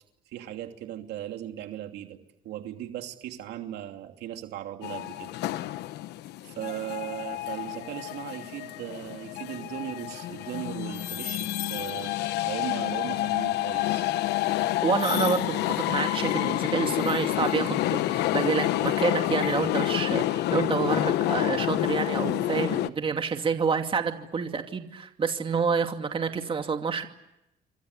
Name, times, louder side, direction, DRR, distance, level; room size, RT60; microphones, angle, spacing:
voice 1, 0.3-5.3 5.7-5.8 6.4-14.0, right 12 dB, 80° right, 5 dB, 2.9 m, -38 dB
sound 1, 4.8-22.9, left 15 dB, 80° left, 1.0 m, -28 dB
voice 2, 14.8-27.1, right 5 dB, 30° right, 5 dB, 2.6 m, -28 dB
28.5 x 25.0 x 8.3 m, 0.87 s
cardioid pair, 110°, 17 cm